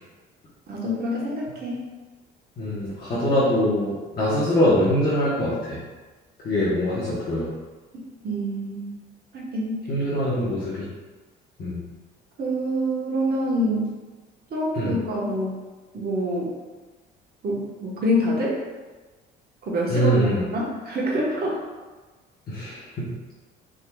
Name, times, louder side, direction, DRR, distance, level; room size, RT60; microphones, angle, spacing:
voice 1, 0.7-1.8 7.9-8.9 9.3-9.8 12.4-13.9 14.5-15.6 15.9-16.5 17.4-18.6 19.6-21.6, equal, 50° right, -3 dB, 1.1 m, -26 dB
voice 2, 2.6-5.8 6.4-7.5 9.9-10.9 11.6-11.8 14.7-15.0 19.9-20.4 22.5-22.8, equal, 45° left, -10 dB, 1.1 m, -23 dB
3.7 x 2.9 x 2.3 m, 1.3 s
supercardioid pair, 75°, 21 cm